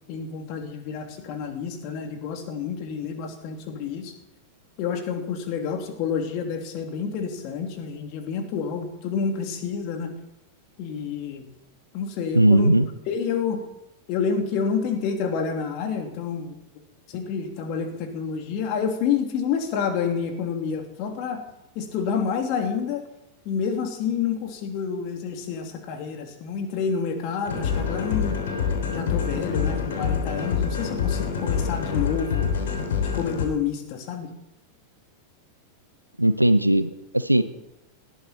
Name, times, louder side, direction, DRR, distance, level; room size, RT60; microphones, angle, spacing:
voice 1, 0.1-4.1 4.8-10.1 10.8-11.4 11.9-12.7 13.1-13.6 14.1-16.5 17.1-21.4 21.7-23.0 23.4-28.4 28.9-32.5 33.1-34.3, left 6 dB, 45° left, 4 dB, 3.0 m, -28 dB
voice 2, 12.3-12.9 36.2-37.4, right 1 dB, 85° right, 13 dB, 0.9 m, -18 dB
sound 1, 27.5-33.5, left 6 dB, 60° left, 3.3 m, -26 dB
19.0 x 14.0 x 4.4 m, 0.89 s
figure-of-eight pair, 90°, 0 cm